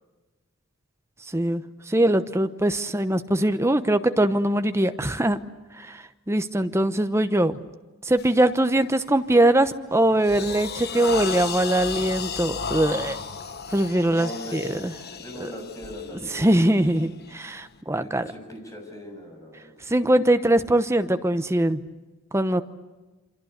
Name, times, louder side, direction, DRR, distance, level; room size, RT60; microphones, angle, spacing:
voice 1, 1.3-5.4 5.8-7.6 8.0-13.2 13.7-14.8 15.4-15.5 16.3-17.1 17.3-18.3 19.9-21.8 22.3-22.6, right 1 dB, 10° right, 10 dB, 0.9 m, -22 dB
sound 1, 8.2-8.4 8.9-9.2 9.7-17.8, left 6 dB, 45° left, 1.2 m, -34 dB
voice 2, 14.1-14.9 15.2-16.7 18.0-19.7, left 1 dB, 15° left, 2 dB, 6.8 m, -40 dB
28.0 x 25.5 x 8.1 m, 1.2 s
head